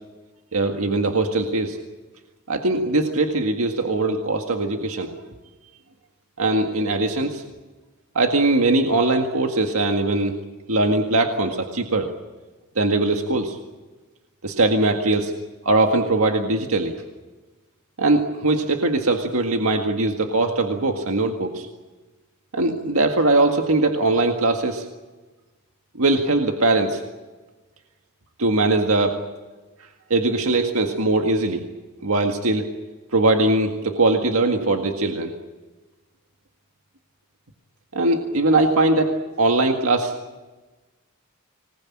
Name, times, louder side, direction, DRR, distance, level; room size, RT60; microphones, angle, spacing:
voice 1, 0.5-1.8 2.5-5.1 6.4-7.4 8.2-10.4 10.7-12.1 12.8-13.6 14.4-15.3 15.6-17.0 18.0-21.7 22.5-24.9 26.0-27.0 28.4-29.2 30.1-31.6 32.0-32.7 33.1-35.3 37.9-40.2, right 2 dB, 75° right, 4 dB, 1.9 m, -21 dB
25.5 x 20.0 x 8.7 m, 1.2 s
head